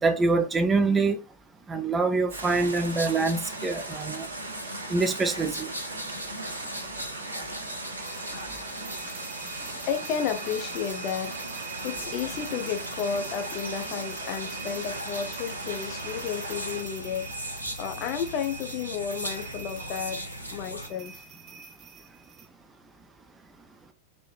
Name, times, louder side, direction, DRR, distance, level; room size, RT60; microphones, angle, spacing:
voice 1, 0.0-1.2 1.7-4.3 4.9-5.7, right 3 dB, 15° right, 0.4 m, -25 dB
sound 1, 2.3-20.9, equal, 90° left, 0.6 m, -38 dB
sound 2, 2.3-16.8, right 3 dB, 75° right, 0.6 m, -40 dB
sound 3, 8.0-22.5, right 7 dB, 40° right, 0.7 m, -45 dB
voice 2, 9.9-11.3 11.8-21.2, left 8 dB, 40° left, 0.7 m, -32 dB
4.1 x 2.1 x 3.2 m
figure-of-eight pair, 90°, 0 cm